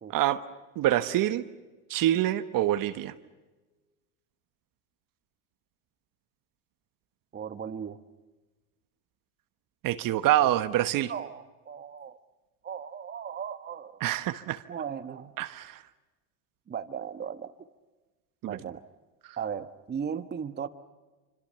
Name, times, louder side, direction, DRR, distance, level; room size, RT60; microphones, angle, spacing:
voice 1, 0.1-0.4 0.8-1.4 1.9-3.1 9.8-11.1 14.0-14.6 15.4-15.8 18.4-18.6, right 13 dB, 45° right, 12 dB, 1.3 m, -26 dB
voice 2, 7.3-8.0 11.1-12.2 12.6-14.0 14.7-15.3 16.7-17.5 18.4-18.8 19.4-20.7, right 7 dB, 20° right, 10 dB, 1.3 m, -36 dB
26.5 x 25.5 x 6.8 m, 1.2 s
hypercardioid pair, 95°, 45 cm